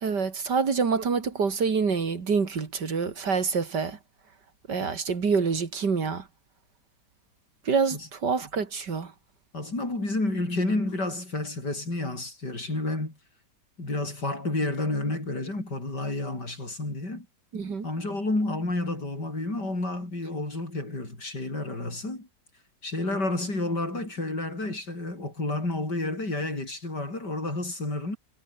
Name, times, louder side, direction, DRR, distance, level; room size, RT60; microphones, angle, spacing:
voice 1, 0.0-4.0 4.7-6.2 7.7-9.1 17.5-17.9, right 5 dB, 80° right, 3.1 m, -26 dB
voice 2, 9.5-13.2 13.8-17.3 17.8-22.3 22.8-28.2, left 2 dB, 80° left, 8.3 m, -30 dB
omnidirectional pair, 1.8 m